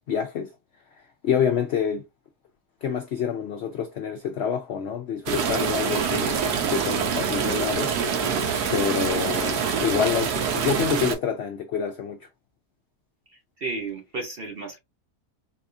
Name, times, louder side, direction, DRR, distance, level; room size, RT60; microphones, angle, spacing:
voice 1, 0.1-0.5 1.2-2.1 2.8-6.4 6.7-7.9 8.7-12.3, left 7 dB, 70° left, 0.6 m, -27 dB
sound 1, 5.3-11.1, right 6 dB, 80° right, 1.4 m, -25 dB
voice 2, 5.5-6.2 13.3-14.8, right 3 dB, 45° right, 0.8 m, -35 dB
4.1 x 2.4 x 2.6 m
omnidirectional pair, 1.7 m